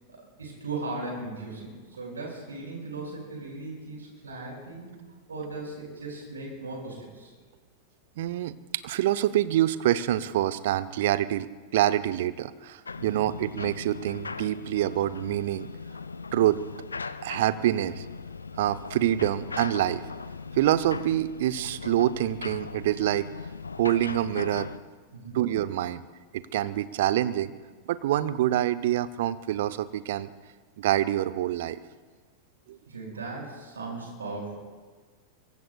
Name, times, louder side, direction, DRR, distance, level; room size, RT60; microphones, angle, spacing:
voice 1, 0.1-4.9 5.3-7.3 13.0-13.3 25.1-25.4 32.9-34.6, right 3 dB, 70° right, -1 dB, 6.4 m, -38 dB
voice 2, 8.2-11.5 11.7-15.7 16.3-16.6 17.2-18.1 18.6-20.0 20.6-23.3 23.8-24.7 25.3-26.0 26.3-27.5 27.9-30.3 30.8-31.8 32.7-32.8, right 13 dB, 55° right, 15 dB, 0.7 m, -26 dB
sound 1, 12.9-24.8, left 4 dB, 75° left, 0.5 m, -39 dB
26.0 x 23.5 x 2.4 m, 1.4 s
figure-of-eight pair, 90°, 0 cm